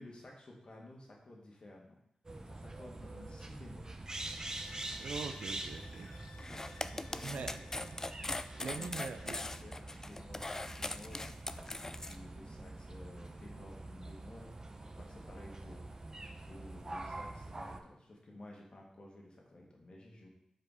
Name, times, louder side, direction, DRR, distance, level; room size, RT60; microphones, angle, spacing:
voice 1, 0.0-2.0 2.5-3.9 6.2-7.6 8.6-11.3 12.0-15.8 16.4-20.3, left 1 dB, 50° left, -1 dB, 1.7 m, -53 dB
sound 1, 2.2-17.8, right 2 dB, 30° right, 0.7 m, -45 dB
sound 2, 4.1-9.5, left 5 dB, 80° left, 0.5 m, -58 dB
voice 2, 4.7-6.1 7.2-7.9 8.2-9.4, right 5 dB, 85° right, 7 dB, 0.6 m, -44 dB
sound 3, 6.4-12.1, left 2 dB, 25° left, 0.3 m, -40 dB
5.0 x 4.5 x 4.9 m, 0.80 s
cardioid pair, 65°, 2 cm